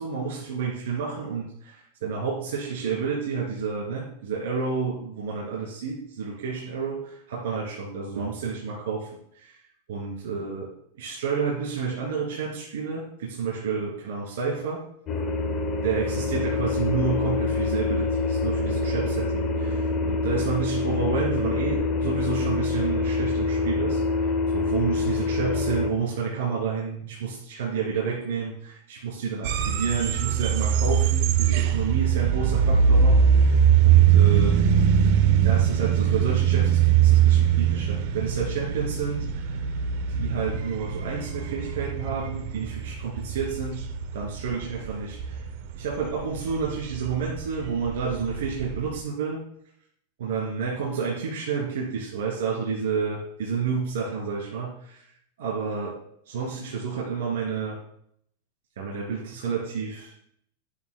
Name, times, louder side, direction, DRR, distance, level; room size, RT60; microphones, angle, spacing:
voice 1, 0.0-9.6 9.9-10.7 10.9-14.8 15.8-34.6 35.4-39.7 40.1-43.9 44.1-45.5 45.8-49.4 50.2-55.1 55.4-56.0 56.3-57.8 58.8-60.1, right 5 dB, 75° right, -4 dB, 2.7 m, -30 dB
sound 1, 15.1-25.9, left 3 dB, 25° left, 0.7 m, -26 dB
sound 2, 29.4-49.0, right 8 dB, 45° right, 0.6 m, -22 dB
11.0 x 7.4 x 2.2 m, 0.68 s
supercardioid pair, 175°, 0 cm